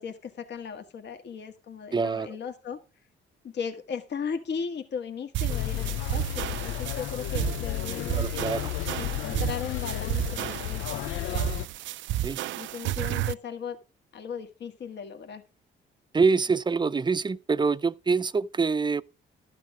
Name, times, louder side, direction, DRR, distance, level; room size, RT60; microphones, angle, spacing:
voice 1, 0.0-2.8 3.4-8.3 8.9-11.5 12.6-13.8 14.1-15.4, left 6 dB, 60° left, 1.7 m, -37 dB
voice 2, 1.9-2.3 8.2-8.7 12.2-12.4 16.1-19.0, right 4 dB, 20° right, 0.5 m, -25 dB
sound 1, 5.3-13.3, right 13 dB, 70° right, 0.5 m, -32 dB
sound 2, 5.5-11.7, left 13 dB, 85° left, 0.5 m, -33 dB
12.5 x 7.5 x 4.9 m
cardioid pair, 90°, 20 cm